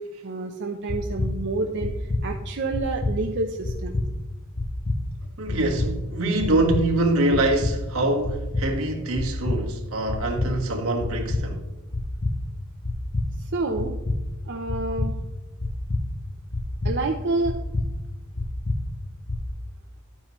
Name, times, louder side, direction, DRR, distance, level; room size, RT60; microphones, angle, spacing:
voice 1, 0.2-4.0 13.5-14.0 14.5-15.1 16.8-17.5, right 3 dB, 55° right, 0.7 m, -28 dB
sound 1, 0.9-1.3 1.8-2.2 2.7-3.1 3.6-4.1 4.6-5.0 5.5-5.9 6.4-6.8 7.3-7.7 8.2-8.7 9.2-9.6 10.1-10.5 11.0-11.4 11.9-12.3 12.8-13.3 13.8-14.2 14.7-15.1 15.6-16.0 16.5-16.9 17.4-17.9 18.4-18.8 19.3-19.4, left 2 dB, 35° left, 0.8 m, -26 dB
voice 2, 5.4-11.6, right 2 dB, 75° right, 1.6 m, -24 dB
11.0 x 9.2 x 3.1 m
head